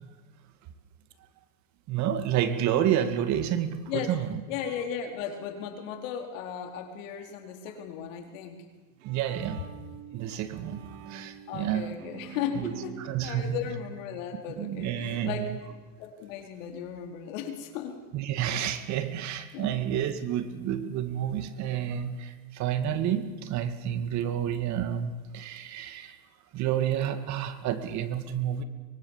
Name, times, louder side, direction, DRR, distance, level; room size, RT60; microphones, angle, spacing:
voice 1, 1.9-4.4 9.0-9.6 10.1-11.9 12.6-12.7 13.0-13.6 14.6-15.5 18.1-26.2 26.5-28.6, right 10 dB, 45° right, 10 dB, 2.3 m, -29 dB
voice 2, 4.5-8.6 11.5-15.5 16.0-18.0 19.5-19.7, left 8 dB, 75° left, 4 dB, 4.5 m, -36 dB
Bowed string instrument, 8.7-14.8, right 7 dB, 80° right, 3.6 m, -47 dB
24.0 x 23.5 x 7.4 m, 1.3 s
supercardioid pair, 140°, 39 cm